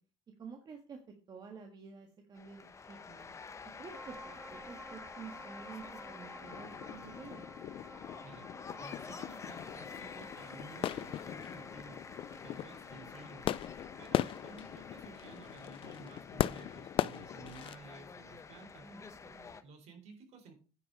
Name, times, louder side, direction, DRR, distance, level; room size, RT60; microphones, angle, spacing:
voice 1, 0.4-1.0 1.3-3.3 3.8-7.4 18.8-19.6, right 5 dB, 35° right, 2 dB, 1.7 m, -50 dB
sound 1, 2.3-19.6, left 5 dB, 25° left, 0.9 m, -49 dB
sound 2, 3.9-15.0, equal, 5° right, 1.0 m, -54 dB
sound 3, 6.4-17.8, left 12 dB, 45° left, 0.4 m, -39 dB
voice 2, 8.8-13.5 14.0-18.9 19.6-20.6, right 3 dB, 55° right, 3 dB, 3.8 m, -54 dB
9.7 x 4.8 x 6.2 m, 0.34 s
cardioid pair, 115°, 13 cm